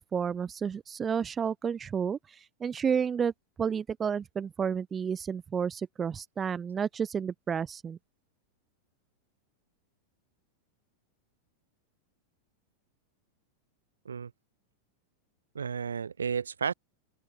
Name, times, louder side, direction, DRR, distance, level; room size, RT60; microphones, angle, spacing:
voice 1, 0.0-3.3 3.6-8.0, right 7 dB, 20° right, 2.5 m, -31 dB
voice 2, 15.5-16.7, right 6 dB, 70° right, 7.1 m, -32 dB
open air
figure-of-eight pair, 90°, 0 cm